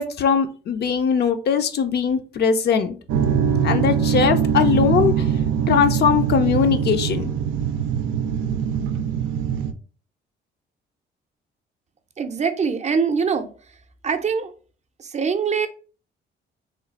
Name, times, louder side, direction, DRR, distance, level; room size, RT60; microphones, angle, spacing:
voice 1, 0.0-3.0 3.6-5.3 5.7-7.3, left 7 dB, 55° left, 0.5 m, -20 dB
sound 1, 3.1-9.7, right 8 dB, 85° right, 0.4 m, -22 dB
voice 2, 12.2-13.5 14.0-14.5 15.1-15.7, right 6 dB, 35° right, 0.5 m, -23 dB
3.1 x 2.4 x 3.9 m
cardioid pair, 90°, 20 cm